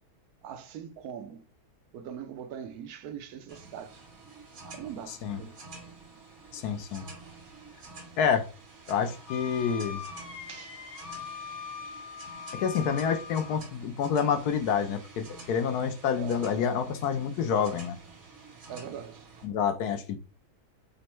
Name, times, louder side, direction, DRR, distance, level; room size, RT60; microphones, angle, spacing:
voice 1, 0.4-1.4 1.9-4.0 4.6-5.6 6.6-6.7 10.5-10.8 16.1-16.4 18.7-19.3, right 8 dB, 70° right, 1.1 m, -42 dB
sound 1, 3.5-19.5, right 3 dB, 55° right, 1.9 m, -49 dB
voice 2, 6.5-7.0 8.2-8.5 8.9-10.0 12.5-18.0 19.4-20.2, left 7 dB, 75° left, 1.1 m, -28 dB
Wind instrument woodwind instrument, 9.3-13.6, left 6 dB, 25° left, 0.8 m, -41 dB
5.2 x 2.1 x 4.4 m
omnidirectional pair, 1.7 m